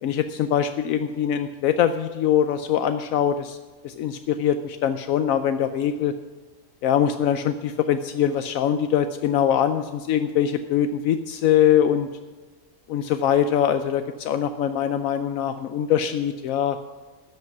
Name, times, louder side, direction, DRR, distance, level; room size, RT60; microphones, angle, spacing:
voice 1, 0.0-3.6 3.8-6.1 6.8-12.1 12.9-16.8, left 9 dB, 80° left, 9 dB, 1.0 m, -23 dB
13.0 x 5.4 x 9.1 m, 1.3 s
omnidirectional pair, 1.4 m